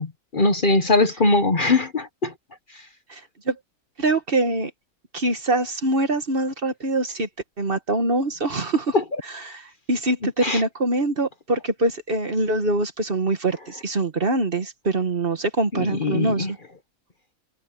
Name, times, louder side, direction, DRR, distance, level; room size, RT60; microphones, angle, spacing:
voice 1, 0.0-2.3 8.9-9.0 10.4-10.6 15.7-16.5, left 3 dB, 40° left, 1.2 m, -21 dB
voice 2, 3.1-3.6 4.0-4.7 5.1-7.3 7.6-9.0 9.3-16.6, right 2 dB, 40° right, 1.5 m, -24 dB
omnidirectional pair, 1.5 m